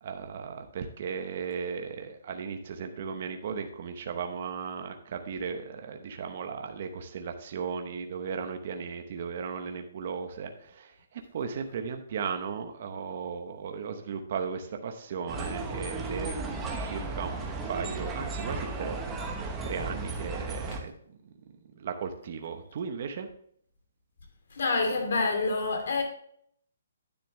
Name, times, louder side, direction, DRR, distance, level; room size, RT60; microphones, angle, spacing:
voice 1, 0.0-16.3 16.8-19.0 19.3-20.9 21.2-21.3 21.7-23.3, right 6 dB, 40° right, 0.9 m, -36 dB
sound 1, 15.3-20.8, right 3 dB, 10° right, 1.0 m, -35 dB
voice 2, 24.5-26.0, left 3 dB, 60° left, 2.7 m, -27 dB
9.8 x 7.1 x 3.2 m
hypercardioid pair, 175°, 0 cm